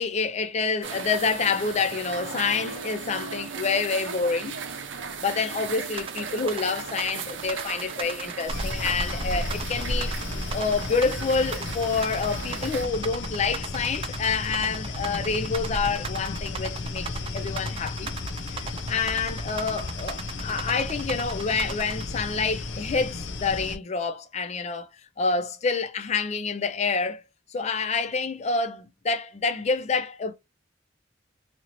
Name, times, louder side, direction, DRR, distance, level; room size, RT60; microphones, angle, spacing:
voice 1, 0.0-4.5 5.2-10.2 10.5-18.1 18.5-24.9 25.2-27.2 27.5-30.3, left 4 dB, 35° left, 0.4 m, -27 dB
sound 1, 0.8-12.9, right 6 dB, 85° right, 0.6 m, -37 dB
sound 2, 6.0-22.0, right 6 dB, 30° right, 0.3 m, -37 dB
sound 3, 8.5-23.8, left 2 dB, 80° left, 0.6 m, -33 dB
2.8 x 2.7 x 2.9 m
head